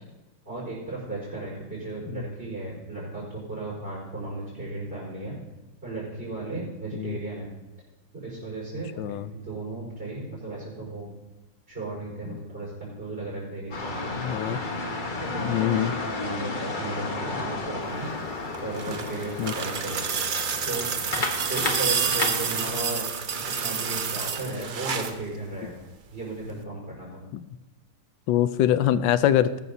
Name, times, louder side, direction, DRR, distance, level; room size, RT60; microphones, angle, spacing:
voice 1, 0.4-5.3 5.8-7.5 8.1-11.1 11.7-18.1 18.6-20.0 20.6-20.9 21.4-23.1 23.4-25.8 26.1-27.3, right 2 dB, 30° right, -10 dB, 5.1 m, -35 dB
voice 2, 9.0-9.3 14.2-14.6 15.4-15.9 19.4-19.5 27.3-27.5 28.3-29.6, left 11 dB, 85° left, 14 dB, 1.3 m, -24 dB
sound 1, 13.7-22.8, left 3 dB, 30° left, 1.1 m, -33 dB
sound 2, 18.4-25.2 26.5-26.6, right 6 dB, 85° right, 0.4 m, -29 dB
19.5 x 12.5 x 2.8 m, 1.0 s
omnidirectional pair, 1.9 m